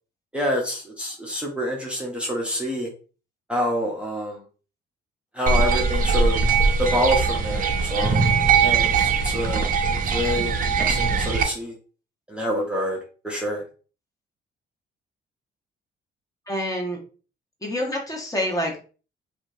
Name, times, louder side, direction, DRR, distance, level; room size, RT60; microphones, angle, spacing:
voice 1, 0.3-2.9 3.5-4.4 5.3-6.4 6.8-8.2 8.6-9.7 10.0-11.8 12.3-13.0 13.2-13.6, equal, 5° right, -2 dB, 0.7 m, -27 dB
sound 1, 5.5-11.4, right 5 dB, 45° right, 0.5 m, -21 dB
voice 2, 16.5-17.0 17.6-18.8, equal, 15° left, 0 dB, 1.0 m, -27 dB
2.8 x 2.4 x 2.6 m, 0.36 s
cardioid pair, 90°, 20 cm